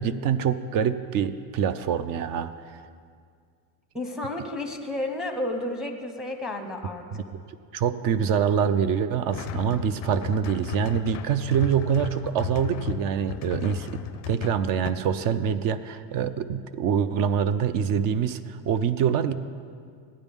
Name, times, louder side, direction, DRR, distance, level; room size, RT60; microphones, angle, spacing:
voice 1, 0.0-2.8 7.1-7.2 7.7-19.3, right 8 dB, 45° right, 13 dB, 0.4 m, -25 dB
voice 2, 3.9-7.2, left 1 dB, ahead, 4 dB, 0.7 m, -32 dB
sound 1, 9.3-14.9, left 10 dB, 35° left, 0.4 m, -35 dB
15.0 x 9.8 x 3.6 m, 2.1 s
cardioid pair, 140°, 48 cm